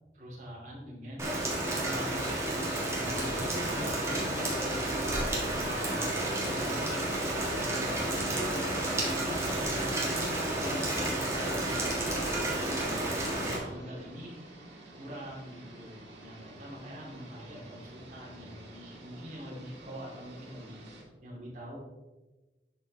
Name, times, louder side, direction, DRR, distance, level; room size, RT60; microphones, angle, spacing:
voice 1, 0.1-1.3 1.7-7.2 7.6-14.4 14.9-21.8, equal, 40° right, -5 dB, 2.6 m, -44 dB
Rain, 1.2-13.6, right 1 dB, 15° right, 1.5 m, -31 dB
sound 1, 5.5-21.0, right 1 dB, 80° right, 2.1 m, -51 dB
11.0 x 4.5 x 3.3 m, 1.2 s
head